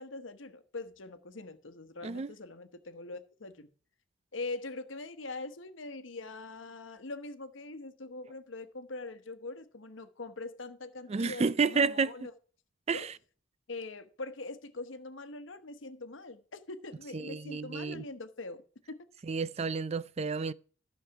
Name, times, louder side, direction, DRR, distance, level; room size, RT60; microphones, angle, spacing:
voice 1, 0.0-3.7 4.3-12.3 12.9-13.1 13.7-19.0, left 3 dB, 80° left, 1.1 m, -43 dB
voice 2, 2.0-2.3 11.1-12.1 12.9-13.1 17.1-18.0 19.2-20.5, right 4 dB, 35° right, 0.4 m, -30 dB
13.5 x 6.4 x 4.7 m
head